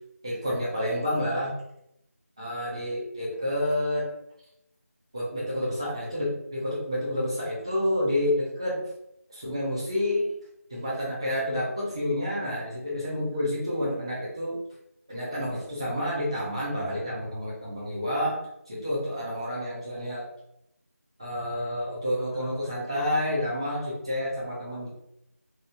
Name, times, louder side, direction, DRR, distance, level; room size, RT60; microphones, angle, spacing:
voice 1, 0.2-1.5 2.4-4.1 5.1-8.8 9.3-10.3 10.7-14.6 15.1-18.4 18.7-20.2 21.2-24.9, left 1 dB, 20° right, -7 dB, 0.5 m, -29 dB
2.9 x 2.0 x 3.3 m, 0.79 s
figure-of-eight pair, 170°, 8 cm